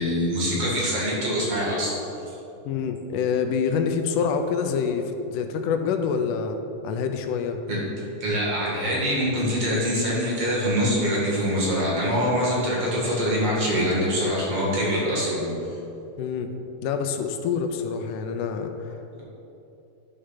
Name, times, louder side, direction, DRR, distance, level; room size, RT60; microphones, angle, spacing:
voice 1, 0.0-1.9 7.7-7.8 8.2-15.5, equal, 55° right, -5 dB, 2.9 m, -24 dB
voice 2, 2.7-6.6 6.8-7.6 16.2-16.5 16.8-18.9, left 6 dB, 80° left, 6 dB, 2.1 m, -26 dB
11.5 x 5.0 x 5.7 m, 3.0 s
omnidirectional pair, 3.7 m